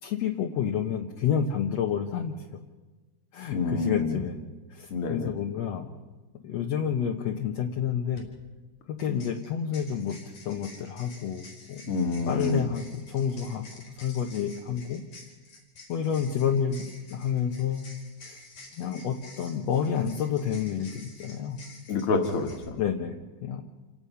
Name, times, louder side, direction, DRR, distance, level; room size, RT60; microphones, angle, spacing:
voice 1, 0.0-2.4 3.3-4.4 4.7-5.9 6.4-8.3 8.9-11.8 12.3-13.6 14.0-15.0 15.9-17.9 18.3-18.4 18.8-21.6 22.8-23.6, left 8 dB, 65° left, 1 dB, 2.2 m, -29 dB
voice 2, 3.5-4.2 4.9-5.3 11.9-12.7 21.9-22.8, left 3 dB, 50° left, 5 dB, 2.5 m, -28 dB
sound 1, 8.0-8.2 9.0-22.6, left 2 dB, 85° left, 6.2 m, -50 dB
28.5 x 17.5 x 5.7 m, 1.2 s
omnidirectional pair, 3.4 m